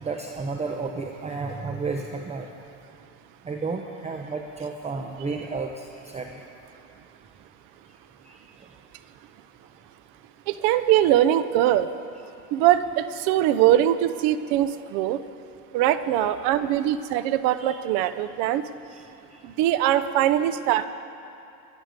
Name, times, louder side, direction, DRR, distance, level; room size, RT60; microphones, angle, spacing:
voice 1, 0.0-2.5 3.4-6.4 8.2-8.4 16.2-16.3 17.6-17.8 19.0-19.1 19.3-19.4, right 4 dB, 20° right, 3 dB, 0.9 m, -32 dB
voice 2, 10.5-11.9 12.5-15.2 15.7-18.6 19.4-20.9, right 12 dB, 70° right, 13 dB, 0.8 m, -22 dB
22.5 x 12.0 x 5.2 m, 2.6 s
supercardioid pair, 115°, 37 cm